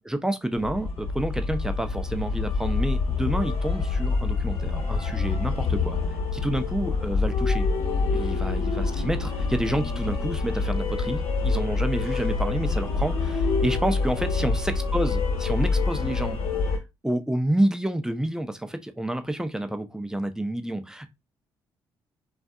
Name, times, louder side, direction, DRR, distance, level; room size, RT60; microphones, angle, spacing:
voice 1, 0.0-6.0 6.3-7.7 8.1-16.4 16.7-16.8 17.0-21.1, right 1 dB, 5° right, 0.5 m, -29 dB
sound 1, 0.5-16.8, left 4 dB, 60° left, 1.0 m, -26 dB
2.5 x 2.4 x 2.2 m
hypercardioid pair, 50°, 11 cm